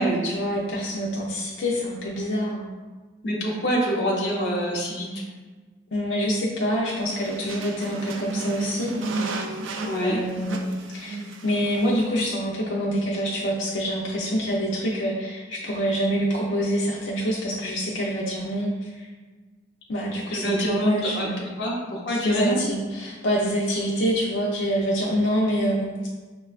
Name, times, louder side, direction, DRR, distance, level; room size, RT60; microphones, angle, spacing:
voice 1, 0.0-2.7 5.9-8.9 9.3-9.4 10.0-11.1 11.4-19.1 19.9-21.4 22.1-26.1, equal, 80° left, -4 dB, 0.5 m, -26 dB
voice 2, 3.2-5.2 9.8-10.2 20.3-21.3 21.6-22.6, equal, 60° left, -3 dB, 0.9 m, -25 dB
sound 1, 7.0-12.1, right 2 dB, 85° right, 0.4 m, -33 dB
5.9 x 2.2 x 2.4 m, 1.4 s
head